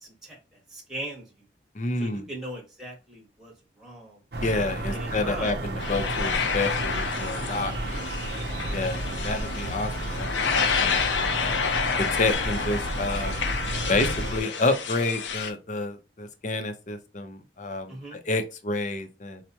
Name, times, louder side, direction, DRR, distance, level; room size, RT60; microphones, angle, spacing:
voice 1, 0.0-1.2 2.0-4.2 4.9-5.5 13.8-14.0 17.9-18.2, right 1 dB, ahead, 1.0 m, -39 dB
voice 2, 1.7-2.3 4.4-8.0 8.7-11.6 12.0-13.3 13.9-19.4, left 2 dB, 45° left, 0.5 m, -29 dB
sound 1, 4.3-14.4, right 1 dB, 65° right, 0.6 m, -32 dB
sound 2, 5.8-15.5, left 6 dB, 90° left, 0.5 m, -29 dB
4.4 x 2.1 x 2.8 m
head